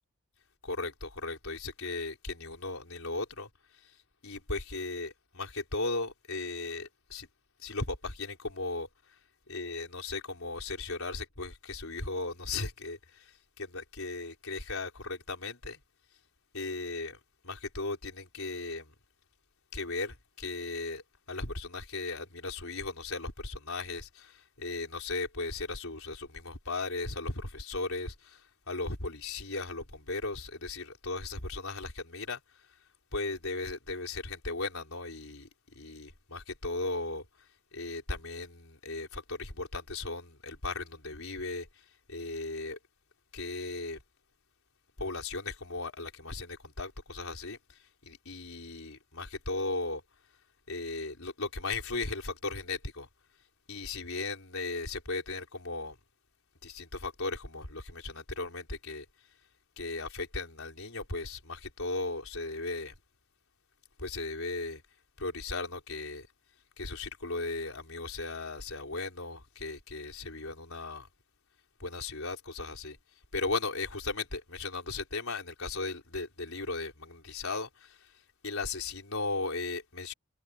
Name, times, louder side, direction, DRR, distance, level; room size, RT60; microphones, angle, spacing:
voice 1, 0.6-3.5 3.7-4.0 4.2-7.3 7.6-9.2 9.5-15.8 16.5-18.9 19.7-21.0 21.3-32.4 33.1-42.8 43.3-44.0 45.0-50.0 50.7-53.1 53.7-56.0 56.6-59.1 59.8-62.9 64.0-64.8 65.2-66.3 66.8-71.1 71.8-73.0 73.3-80.1, left 3 dB, 70° left, 5.1 m, -37 dB
head